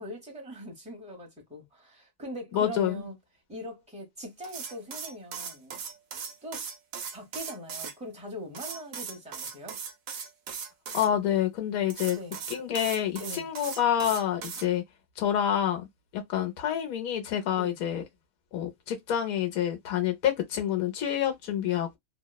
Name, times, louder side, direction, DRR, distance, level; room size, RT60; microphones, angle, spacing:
voice 1, 0.0-3.2 3.5-5.8 6.4-6.7 7.1-9.8 12.1-12.4 13.2-13.5 17.5-17.8, equal, 5° right, 0.8 m, -41 dB
voice 2, 2.5-3.1 10.9-12.2 12.5-14.8 15.2-15.9 16.1-18.0 18.5-22.0, left 10 dB, 85° left, 1.2 m, -28 dB
sound 1, 4.4-7.9 8.5-11.1 11.9-14.7, right 6 dB, 90° right, 1.1 m, -38 dB
2.9 x 2.0 x 2.2 m
omnidirectional pair, 1.4 m